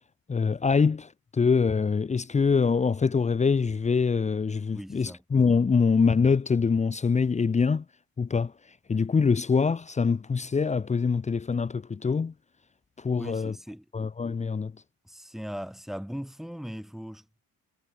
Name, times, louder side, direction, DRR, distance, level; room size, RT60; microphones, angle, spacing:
voice 1, 0.3-7.8 8.2-8.5 8.9-12.3 13.0-13.5 13.9-14.7, left 5 dB, 20° left, 1.3 m, -24 dB
voice 2, 4.7-5.2 13.1-13.8 15.0-17.4, equal, ahead, 4.7 m, -39 dB
cardioid pair, 120°, 33 cm